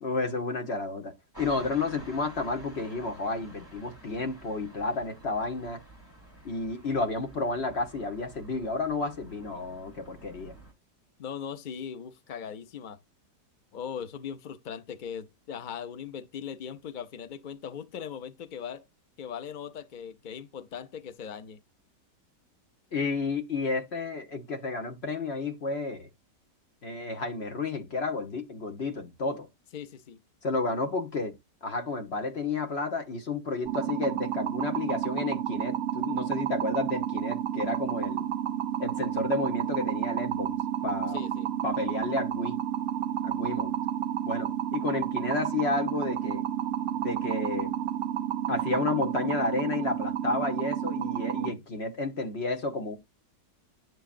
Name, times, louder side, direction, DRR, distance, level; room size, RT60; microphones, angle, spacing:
voice 1, 0.0-5.8 6.4-10.5 22.9-26.1 26.8-29.5 30.4-38.3 38.8-40.6 40.8-41.2 41.6-42.6 43.2-43.7 44.2-46.4 46.9-47.7 48.5-53.0, left 3 dB, 40° left, 1.3 m, -31 dB
sound 1, 1.3-10.7, right 1 dB, 15° left, 3.1 m, -50 dB
voice 2, 11.2-13.0 13.7-18.9 19.2-21.6 29.7-30.2 41.1-41.5, left 7 dB, 90° left, 0.4 m, -39 dB
sound 2, 33.7-51.5, right 10 dB, 65° right, 0.7 m, -31 dB
9.4 x 6.6 x 2.5 m
omnidirectional pair, 1.8 m